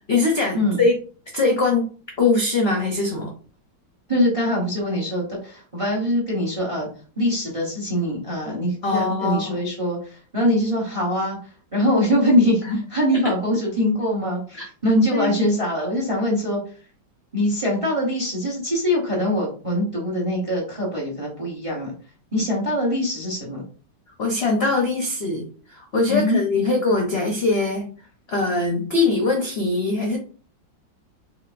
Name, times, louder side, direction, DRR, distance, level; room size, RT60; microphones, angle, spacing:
voice 1, 0.1-0.9 1.3-1.9 2.2-3.3 8.8-9.6 12.6-12.8 14.5-14.7 15.1-15.3 24.2-27.9 28.3-30.2, left 3 dB, 55° left, 0 dB, 0.7 m, -22 dB
voice 2, 4.1-11.4 11.7-12.6 12.9-16.6 17.3-21.9 22.3-23.6 26.1-26.4, left 1 dB, 25° right, -2 dB, 0.8 m, -23 dB
4.9 x 2.8 x 2.5 m, 0.40 s
omnidirectional pair, 2.0 m